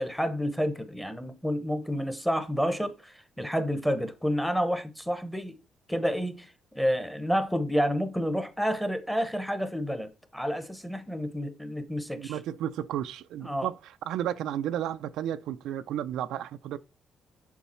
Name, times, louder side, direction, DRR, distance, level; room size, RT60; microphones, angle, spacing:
voice 1, 0.0-5.6 5.9-12.4 13.4-13.7, equal, ahead, 0.9 m, -29 dB
voice 2, 12.1-16.8, right 11 dB, 90° right, 0.4 m, -33 dB
7.1 x 4.7 x 4.3 m
cardioid pair, 145°, 0 cm